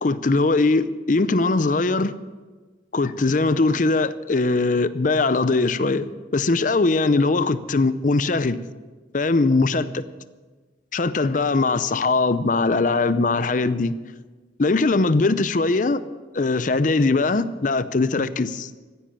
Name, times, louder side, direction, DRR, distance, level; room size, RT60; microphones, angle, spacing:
voice 1, 0.0-2.1 2.9-8.6 9.1-10.0 10.9-13.9 14.6-16.0 16.3-18.7, left 3 dB, 45° left, 14 dB, 0.6 m, -21 dB
15.0 x 10.0 x 6.9 m, 1.3 s
head